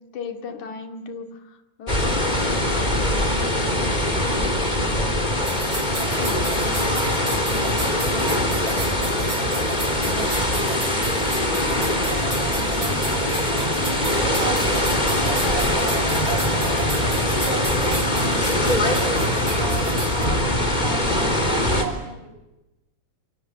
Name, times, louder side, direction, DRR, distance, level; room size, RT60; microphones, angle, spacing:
voice 1, 0.0-4.9 5.2-10.5, left 4 dB, 80° left, 6 dB, 3.7 m, -38 dB
sound 1, 1.9-21.8, left 1 dB, 15° left, 3.5 m, -22 dB
sound 2, 5.4-20.3, right 2 dB, 30° right, 5.9 m, -33 dB
voice 2, 12.0-16.9 17.3-22.1, right 6 dB, 50° right, 6 dB, 6.3 m, -35 dB
28.0 x 23.0 x 8.5 m, 1.0 s
omnidirectional pair, 3.4 m